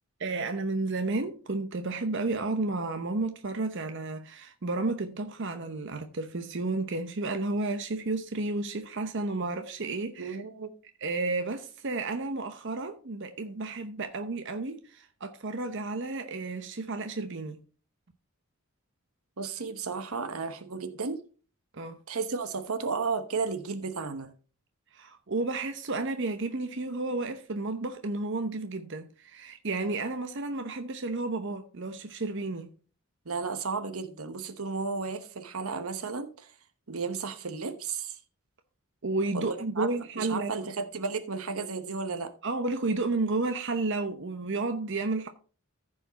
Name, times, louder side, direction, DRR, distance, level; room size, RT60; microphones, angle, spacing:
voice 1, 0.2-10.4 11.0-17.6 21.7-22.0 24.9-32.7 39.0-40.7 42.4-45.3, right 3 dB, 55° right, 0.8 m, -32 dB
voice 2, 10.2-10.7 19.4-21.2 22.1-24.3 33.2-36.5 36.9-38.2 39.3-42.3, right 4 dB, 85° right, 1.1 m, -33 dB
14.5 x 5.0 x 4.0 m
head